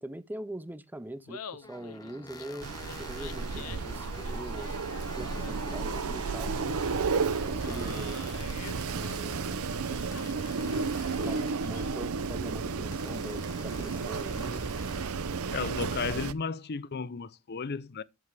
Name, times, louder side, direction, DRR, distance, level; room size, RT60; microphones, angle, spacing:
voice 1, 0.0-2.7 3.0-4.8 5.2-6.8 7.5-8.2 8.8-9.5 11.2-14.6, right 1 dB, 10° right, 0.5 m, -43 dB
Laughter, 1.1-12.2, left 7 dB, 85° left, 0.8 m, -48 dB
sound 1, 1.6-9.6 10.1-11.7 12.9-15.1, left 2 dB, 15° left, 1.0 m, -48 dB
Wind, 2.6-16.3, right 4 dB, 75° right, 0.7 m, -32 dB
voice 2, 15.5-18.0, left 5 dB, 45° left, 0.6 m, -34 dB
11.0 x 7.8 x 3.4 m
head